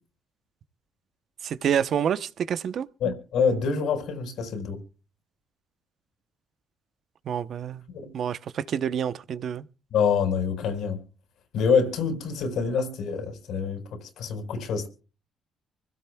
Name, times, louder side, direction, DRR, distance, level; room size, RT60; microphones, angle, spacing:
voice 1, 1.4-2.9 7.3-7.8 8.1-9.6, right 8 dB, 60° right, 0.8 m, -28 dB
voice 2, 3.0-4.8 8.0-8.1 9.9-11.0 11.5-14.9, left 6 dB, 80° left, 4.6 m, -26 dB
25.0 x 16.5 x 2.3 m
cardioid pair, 85°, 0 cm